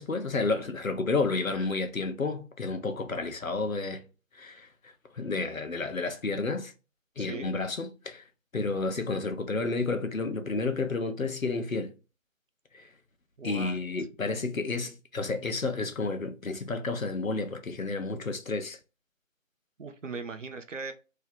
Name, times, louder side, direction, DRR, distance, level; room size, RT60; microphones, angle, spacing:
voice 1, 0.0-4.0 4.3-6.7 7.2-8.2 8.5-11.9 12.7-12.9 13.4-18.8, left 3 dB, 80° left, 0.9 m, -31 dB
voice 2, 7.2-7.5 13.4-13.8 19.8-20.9, right 4 dB, 65° right, 0.7 m, -39 dB
3.2 x 2.8 x 3.8 m
figure-of-eight pair, 160°, 40 cm